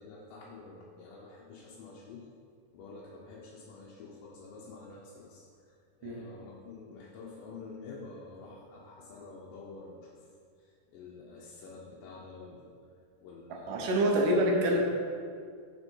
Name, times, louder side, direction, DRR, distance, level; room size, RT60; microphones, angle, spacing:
voice 1, 0.0-2.3 2.7-5.7 6.0-10.1 10.9-12.7 13.2-14.1, left 3 dB, 85° left, -4 dB, 2.5 m, -48 dB
voice 2, 13.5-14.8, equal, 75° right, 0 dB, 2.4 m, -26 dB
6.9 x 6.1 x 4.5 m, 2.2 s
omnidirectional pair, 3.9 m